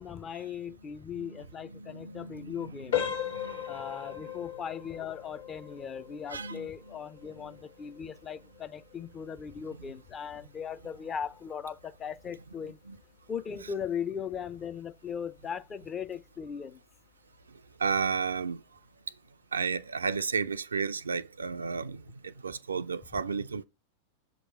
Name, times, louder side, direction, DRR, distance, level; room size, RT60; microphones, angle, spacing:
voice 1, 0.0-3.0 3.7-12.8 13.3-16.8, left 7 dB, 25° left, 0.5 m, -38 dB
voice 2, 1.1-4.5 6.3-7.0 7.4-7.6 9.8-9.9 12.8-13.0 17.8-18.6 19.5-23.6, right 5 dB, 75° right, 0.3 m, -34 dB
sound 1, 2.9-13.6 13.9-14.2 14.8-14.9 15.4-15.5, left 10 dB, 65° left, 1.4 m, -39 dB
6.4 x 3.0 x 5.1 m
figure-of-eight pair, 90°, 0 cm